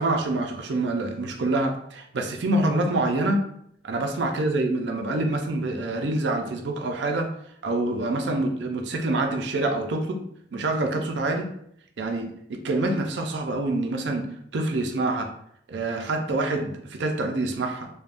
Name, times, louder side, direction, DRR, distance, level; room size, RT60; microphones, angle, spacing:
voice 1, 0.0-3.4 3.8-7.3 7.6-10.2 10.5-11.5 12.0-14.3 14.5-15.3 15.7-17.9, right 2 dB, 70° right, 4 dB, 0.5 m, -26 dB
3.4 x 2.2 x 2.5 m, 0.70 s
head